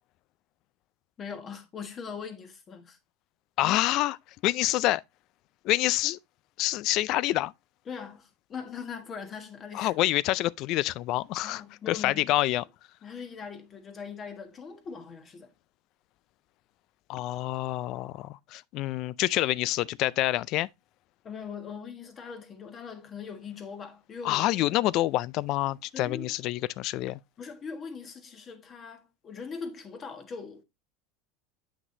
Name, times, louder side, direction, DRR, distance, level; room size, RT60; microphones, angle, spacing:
voice 1, 1.2-3.0 7.9-9.9 11.4-12.3 13.0-15.5 21.2-24.6 25.9-26.3 27.4-30.6, left 6 dB, 30° left, 1.3 m, -41 dB
voice 2, 3.6-4.2 4.4-5.0 5.6-6.2 6.6-7.5 9.7-12.6 17.1-20.7 24.2-27.2, left 16 dB, 50° left, 0.3 m, -27 dB
7.9 x 5.9 x 2.6 m
supercardioid pair, 120°, 0 cm